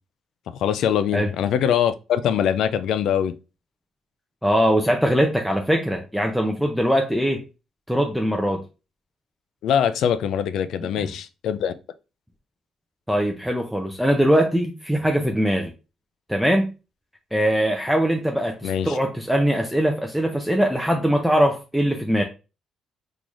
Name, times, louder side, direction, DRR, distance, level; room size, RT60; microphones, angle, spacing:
voice 1, 0.5-3.3 9.6-11.7 18.6-19.0, left 9 dB, 80° left, 0.3 m, -23 dB
voice 2, 4.4-7.4 7.9-8.6 11.0-11.1 13.1-15.7 16.3-16.7 17.3-22.2, equal, ahead, 0.6 m, -21 dB
3.8 x 3.1 x 2.4 m
cardioid pair, 90°, 0 cm